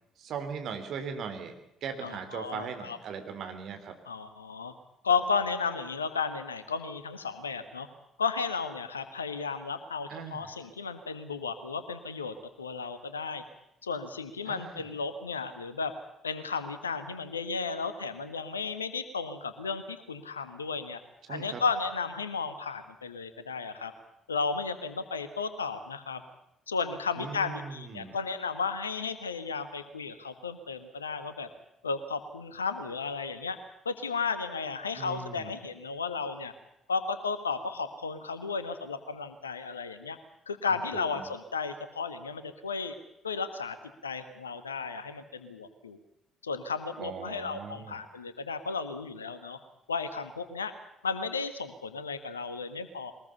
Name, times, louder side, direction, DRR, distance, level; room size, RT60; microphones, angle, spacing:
voice 1, 0.2-1.5 1.8-3.9 10.1-10.5 14.4-14.8 21.3-21.6 27.2-28.2 35.0-35.5 40.7-41.2 47.0-48.0, right 6 dB, 50° right, 6 dB, 3.5 m, -39 dB
voice 2, 2.0-3.0 4.0-4.7 5.0-7.9 8.2-13.4 13.8-15.9 16.2-21.0 21.3-23.9 24.3-26.2 26.7-31.5 31.8-33.6 33.8-36.5 36.9-40.2 40.5-42.9 43.2-43.8 44.0-46.0 46.4-49.6 49.9-50.7 51.0-53.1, left 5 dB, 80° left, 11 dB, 1.5 m, -34 dB
22.5 x 20.0 x 7.0 m, 0.83 s
figure-of-eight pair, 50°, 0 cm